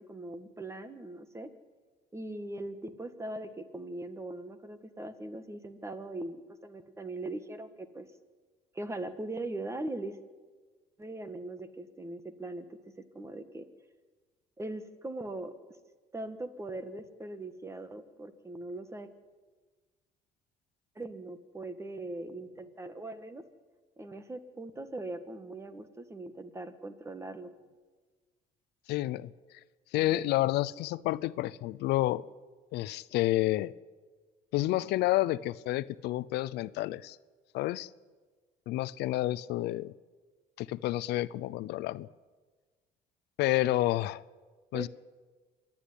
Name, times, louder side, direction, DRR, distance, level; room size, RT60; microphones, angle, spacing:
voice 1, 0.0-1.5 2.1-8.1 8.7-10.2 11.0-12.6 13.1-13.7 14.6-15.5 16.1-19.1 20.9-23.4 24.0-27.5 44.7-44.9, right 2 dB, 15° right, 11 dB, 1.6 m, -40 dB
voice 2, 28.9-29.3 29.9-32.2 32.7-33.7 34.5-37.2 37.5-37.9 38.7-39.9 40.6-42.1 43.4-44.2 44.7-44.9, left 16 dB, 80° left, 19 dB, 0.6 m, -29 dB
26.5 x 10.0 x 9.9 m, 1.4 s
cardioid pair, 110°, 17 cm